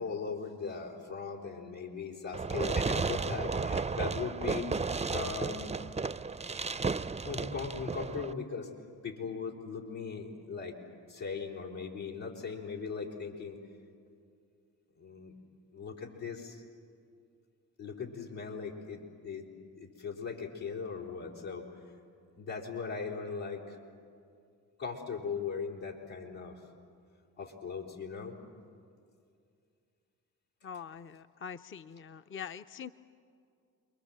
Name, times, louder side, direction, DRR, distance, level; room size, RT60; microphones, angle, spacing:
voice 1, 0.0-4.7 5.1-5.8 7.2-8.7 9.0-10.8 11.1-13.6 15.0-15.3 15.7-16.6 17.8-19.5 19.8-21.7 22.4-23.8 24.8-26.6 27.4-28.4, left 5 dB, 75° left, -2 dB, 4.4 m, -39 dB
Fireworks, 2.3-8.3, right 4 dB, 15° right, 0.5 m, -33 dB
voice 2, 30.6-32.9, left 7 dB, 30° left, 10 dB, 0.7 m, -44 dB
29.5 x 23.0 x 7.7 m, 2.3 s
hypercardioid pair, 45°, 43 cm